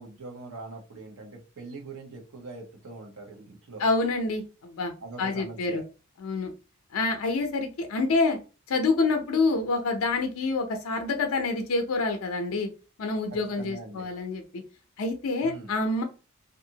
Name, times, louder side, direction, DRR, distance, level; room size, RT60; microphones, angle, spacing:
voice 1, 0.0-3.8 5.0-5.8 13.6-14.1 15.4-15.7, right 3 dB, 80° right, 2 dB, 0.8 m, -42 dB
voice 2, 3.8-4.9 5.2-5.8 6.2-6.5 6.9-8.4 8.7-12.7 13.0-14.6 15.0-16.0, left 3 dB, 85° left, 5 dB, 0.5 m, -27 dB
2.7 x 2.4 x 2.7 m, 0.33 s
head